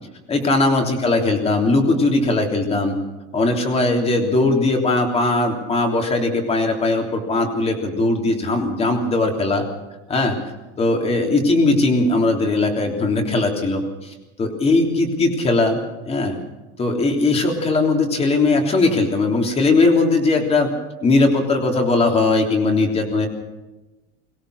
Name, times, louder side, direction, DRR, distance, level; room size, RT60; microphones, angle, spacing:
voice 1, 0.3-3.0 3.3-9.6 10.1-10.4 10.8-15.8 16.1-16.4 16.8-20.7 21.0-23.3, left 2 dB, 20° left, 3 dB, 3.4 m, -19 dB
23.5 x 17.5 x 6.5 m, 1.1 s
supercardioid pair, 160°, 33 cm